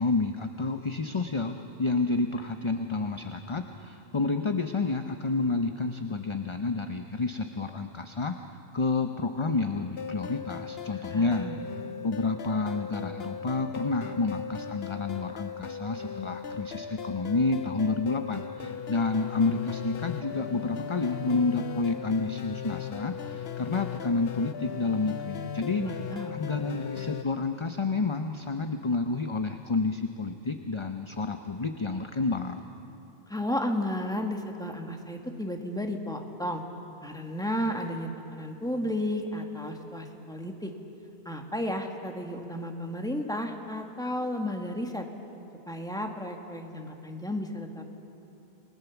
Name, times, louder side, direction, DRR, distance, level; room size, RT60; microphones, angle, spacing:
voice 1, 0.0-11.5 12.0-25.8 26.3-32.6, left 3 dB, 30° left, 6 dB, 0.7 m, -29 dB
sound 1, 10.0-27.2, left 7 dB, 65° left, 1.0 m, -38 dB
voice 2, 11.1-11.6 25.8-26.6 33.3-36.6 37.0-40.7 41.2-45.1 45.7-47.8, left 1 dB, 5° left, 3 dB, 1.7 m, -33 dB
28.5 x 20.0 x 7.1 m, 2.9 s
omnidirectional pair, 1.1 m